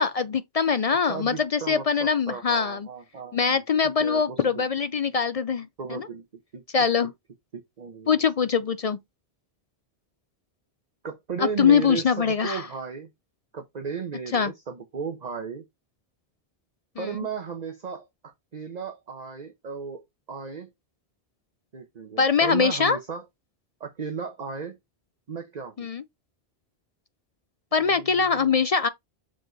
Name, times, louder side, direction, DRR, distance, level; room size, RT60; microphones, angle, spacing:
voice 1, 0.0-2.9 3.3-6.1 6.7-7.1 8.1-9.0 11.4-12.7 14.3-14.5 17.0-17.1 22.2-23.0 25.8-26.0 27.7-28.9, left 6 dB, 55° left, 0.4 m, -23 dB
voice 2, 1.0-3.6 3.8-4.7 5.8-6.2 6.5-6.6 7.5-8.2 11.0-13.1 13.5-15.6 17.0-20.7 21.7-23.2 23.8-24.8 25.3-25.9 27.8-28.5, right 5 dB, 45° right, 1.0 m, -35 dB
6.2 x 4.4 x 3.9 m
omnidirectional pair, 1.1 m